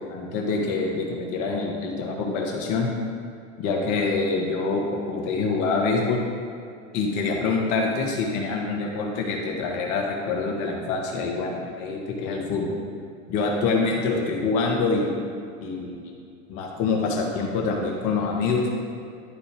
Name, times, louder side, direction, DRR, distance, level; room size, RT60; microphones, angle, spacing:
voice 1, 0.1-2.9 3.6-6.2 6.9-12.8 13.3-15.2 15.6-16.2 16.5-18.6, left 4 dB, 50° left, 0 dB, 1.6 m, -25 dB
11.5 x 4.2 x 3.5 m, 2.4 s
hypercardioid pair, 100°, 39 cm